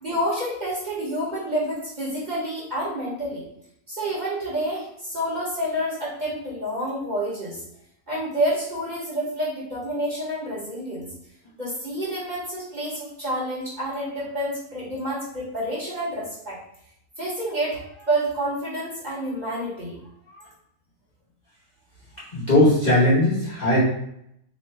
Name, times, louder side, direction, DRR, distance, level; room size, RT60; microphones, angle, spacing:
voice 1, 0.0-3.4 3.9-7.6 8.1-11.1 11.6-16.6 17.2-20.0 20.3-20.5, right 1 dB, 30° right, -7 dB, 1.4 m, -28 dB
voice 2, 22.3-23.8, left 1 dB, 30° left, -9 dB, 1.2 m, -18 dB
3.2 x 2.9 x 4.3 m, 0.74 s
omnidirectional pair, 1.6 m